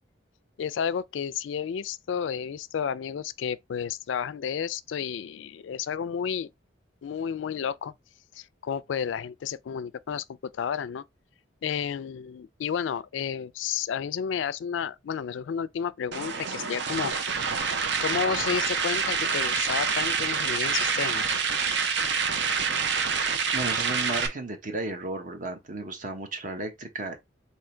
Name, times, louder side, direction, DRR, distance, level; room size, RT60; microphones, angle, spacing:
voice 1, 0.6-6.5 7.0-7.9 8.3-10.2 10.5-11.0 11.6-17.1 18.0-21.3, left 7 dB, 85° left, 0.3 m, -31 dB
sound 1, 16.1-24.3, right 5 dB, 65° right, 0.7 m, -27 dB
voice 2, 23.5-27.2, right 2 dB, 45° right, 1.0 m, -34 dB
3.7 x 2.7 x 4.4 m
head